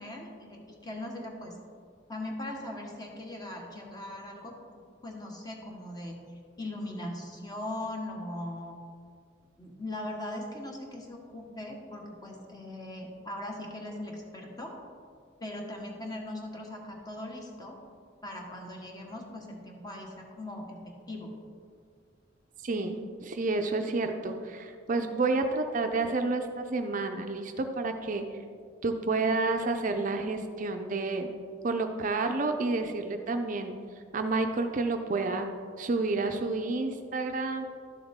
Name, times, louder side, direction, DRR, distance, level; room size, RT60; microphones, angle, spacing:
voice 1, 0.0-1.6 2.1-6.2 6.6-8.8 9.6-14.8 15.4-17.8 18.2-21.3, left 1 dB, 20° left, 0 dB, 1.3 m, -40 dB
voice 2, 22.6-28.2 28.8-31.3 31.6-33.8 34.1-35.5 35.8-37.6, right 3 dB, 45° right, 5 dB, 0.5 m, -30 dB
12.0 x 7.1 x 3.6 m, 2.2 s
head